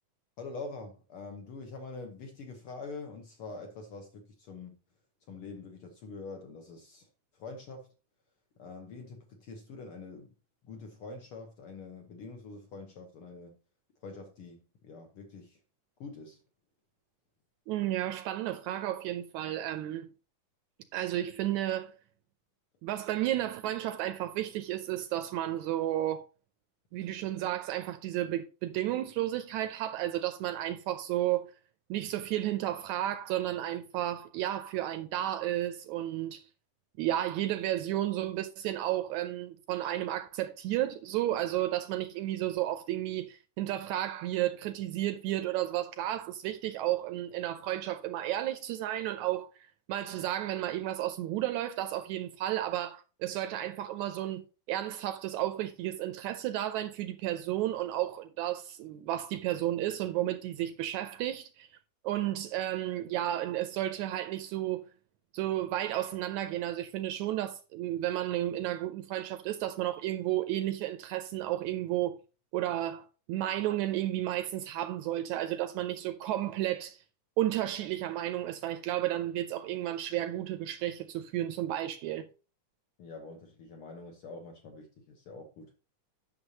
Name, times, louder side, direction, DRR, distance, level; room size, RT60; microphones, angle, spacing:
voice 1, 0.4-4.8 5.3-7.1 7.3-7.9 8.6-10.3 10.6-13.6 14.0-15.6 16.0-16.4 83.0-85.7, left 3 dB, 65° left, 1.4 m, -45 dB
voice 2, 17.7-20.1 20.9-21.9 22.8-26.3 26.9-31.5 31.9-36.5 37.0-49.5 49.9-54.4 54.7-61.7 62.0-64.8 65.3-72.2 72.5-77.0 77.4-82.3, right 13 dB, 80° right, 1.8 m, -32 dB
9.7 x 6.6 x 2.8 m
omnidirectional pair, 3.6 m